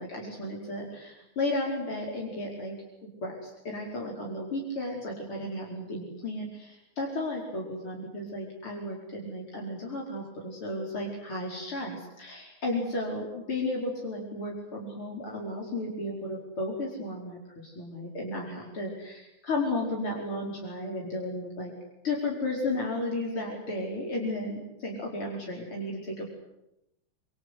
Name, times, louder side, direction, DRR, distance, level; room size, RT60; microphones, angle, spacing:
voice 1, 0.0-2.8 3.0-21.7 22.0-26.3, left 2 dB, 80° left, -2 dB, 5.8 m, -34 dB
27.5 x 24.0 x 8.2 m, 0.86 s
omnidirectional pair, 2.3 m